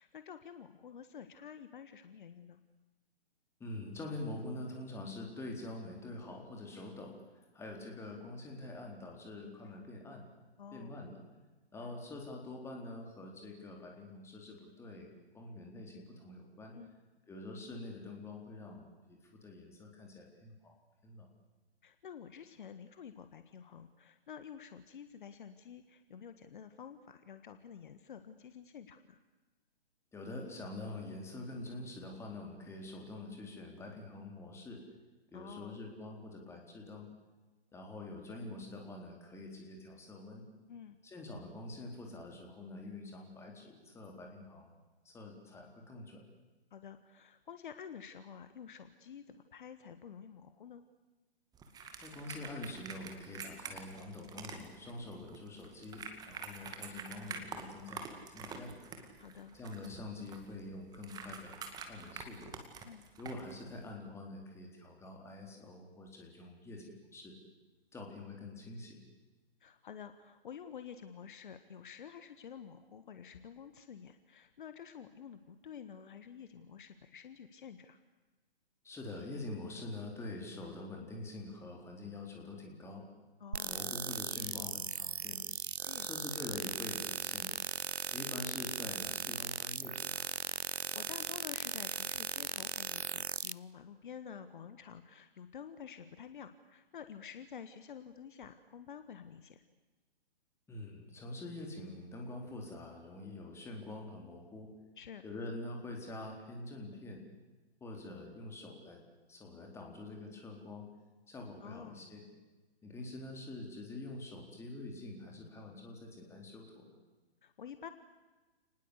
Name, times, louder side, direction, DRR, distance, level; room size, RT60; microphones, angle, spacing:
voice 1, 0.0-2.6 10.6-10.9 16.7-17.0 21.8-29.2 35.3-35.8 40.7-41.0 46.7-50.8 59.2-59.5 62.8-63.0 69.6-78.0 83.4-83.8 85.8-86.1 90.7-99.6 105.0-105.2 111.6-112.0 117.4-117.9, left 8 dB, 50° left, 10 dB, 1.6 m, -50 dB
voice 2, 3.6-7.2 7.5-10.3 10.7-11.2 11.7-16.8 17.3-20.7 21.0-21.3 30.1-34.8 35.3-37.1 37.7-40.5 41.0-44.7 45.0-46.2 52.0-58.9 59.5-61.6 61.9-62.5 63.2-67.4 67.9-69.0 78.8-83.1 83.6-85.4 86.0-87.6 88.1-90.3 100.7-104.7 105.2-107.2 107.8-109.0 109.3-110.9 111.3-112.2 112.8-117.0, left 2 dB, 10° left, 1 dB, 4.1 m, -45 dB
sound 1, 51.5-63.9, right 5 dB, 10° right, 2.2 m, -47 dB
sound 2, 83.5-93.5, right 6 dB, 80° right, 0.8 m, -38 dB
30.0 x 20.0 x 8.2 m, 1.2 s
figure-of-eight pair, 130°, 32 cm